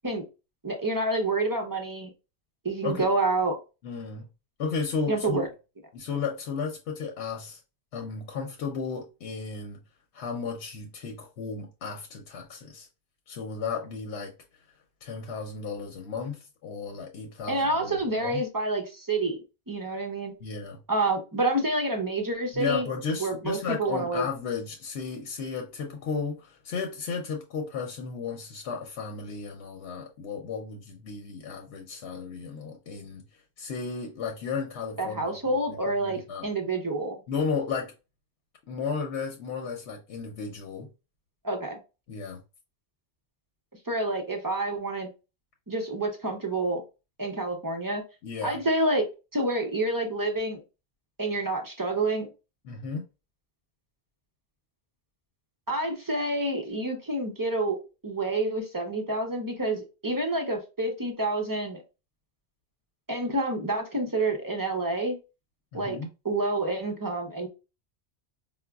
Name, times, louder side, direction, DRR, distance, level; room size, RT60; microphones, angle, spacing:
voice 1, 0.6-2.1 2.6-3.6 5.1-5.5 17.5-19.4 19.7-20.3 20.9-22.9 23.2-24.2 35.0-37.2 41.4-41.8 43.9-45.1 45.7-46.8 47.2-48.0 48.4-49.1 49.3-50.6 51.2-52.3 55.7-57.8 58.0-61.8 63.1-65.2 65.7-66.0 66.2-67.5, right 2 dB, 30° right, 0.4 m, -28 dB
voice 2, 3.8-4.2 4.6-5.5 5.9-7.6 7.9-9.8 10.1-12.9 13.3-14.3 15.0-18.4 20.4-20.8 22.5-33.2 33.6-36.5 37.3-37.9 38.7-40.9 42.1-42.4 48.2-48.6 52.6-53.1 65.7-66.1, left 5 dB, 80° left, 0.9 m, -34 dB
4.8 x 2.1 x 2.2 m
omnidirectional pair, 1.1 m